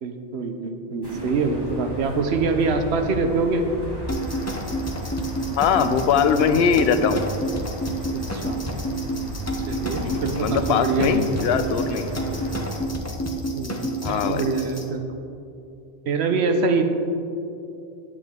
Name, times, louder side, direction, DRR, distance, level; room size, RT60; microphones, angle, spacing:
voice 1, 0.0-3.7 8.1-8.6 9.7-11.2 13.6-15.2 16.1-16.8, right 4 dB, 80° right, 6 dB, 1.0 m, -25 dB
sound 1, 1.0-12.8, right 1 dB, 25° right, 1.3 m, -34 dB
sound 2, 4.1-14.8, right 1 dB, 20° left, 0.6 m, -29 dB
voice 2, 5.6-7.3 10.0-12.1 14.0-14.4, left 7 dB, 75° left, 10 dB, 0.8 m, -21 dB
9.8 x 8.1 x 3.6 m, 2.7 s
omnidirectional pair, 1.1 m